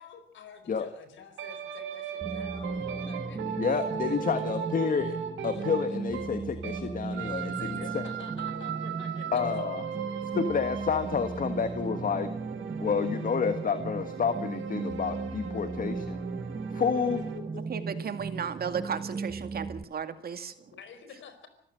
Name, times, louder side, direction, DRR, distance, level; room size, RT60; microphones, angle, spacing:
voice 1, 0.0-3.6 3.8-4.3 7.5-9.4 10.1-10.2 17.3-17.8 20.7-21.5, left 7 dB, 70° left, 10 dB, 4.8 m, -48 dB
sound 1, 1.4-6.9 7.1-17.4, right 8 dB, 80° right, 3.4 m, -38 dB
sound 2, 2.2-19.8, right 4 dB, 25° right, 1.0 m, -36 dB
voice 2, 3.6-5.2 5.4-8.0 9.3-9.8 10.3-12.3 12.8-16.2 16.7-17.2, left 6 dB, 45° left, 9 dB, 1.6 m, -29 dB
voice 3, 17.7-20.5, right 7 dB, 50° right, 9 dB, 2.2 m, -34 dB
25.5 x 14.5 x 7.7 m, 0.70 s
cardioid pair, 90°, 20 cm